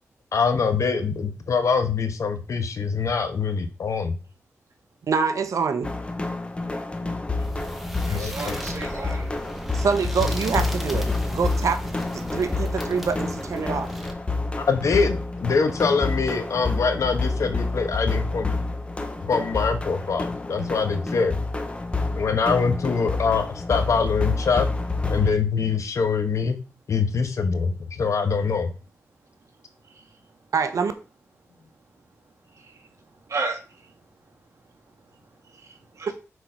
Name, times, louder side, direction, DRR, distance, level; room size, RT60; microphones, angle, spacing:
voice 1, 0.3-4.2 8.1-8.6 14.7-18.6 19.2-21.4 22.2-24.7 25.1-26.6 26.9-28.7, left 5 dB, 75° left, 1.1 m, -24 dB
voice 2, 5.1-5.9 9.7-13.9 30.5-30.9, right 5 dB, 80° right, 0.8 m, -25 dB
sound 1, 5.8-25.3, left 3 dB, 20° left, 0.8 m, -28 dB
sound 2, 7.4-14.1, right 1 dB, 5° right, 1.1 m, -36 dB
voice 3, 8.1-9.3 29.9-30.1 32.6-32.9 33.3-33.9 35.5-36.1, right 3 dB, 65° right, 2.1 m, -34 dB
6.5 x 4.2 x 5.0 m
wide cardioid pair, 120°, 5 cm